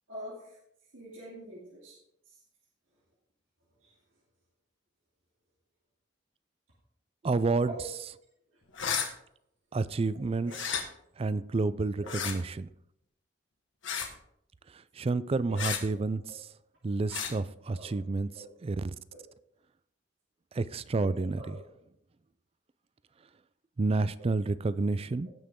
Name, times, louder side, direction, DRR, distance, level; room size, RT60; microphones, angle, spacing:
voice 1, 0.9-2.0 3.8-3.9 7.7-7.8 10.4-10.5 12.0-12.2 15.5-16.0 17.7-17.9 18.3-18.5 19.1-19.2 21.0-21.6 24.2-24.3, right 1 dB, 85° right, 2.7 m, -44 dB
voice 2, 7.2-7.7 9.7-10.8 11.2-12.7 14.7-16.5 16.8-18.9 20.5-21.6 23.8-25.3, right 3 dB, 30° right, 0.4 m, -30 dB
sound 1, 8.7-9.1 10.5-10.8 12.0-12.3 13.8-14.1 15.6-15.8 17.1-17.3, left 7 dB, 75° left, 1.4 m, -32 dB
17.5 x 5.9 x 3.7 m
head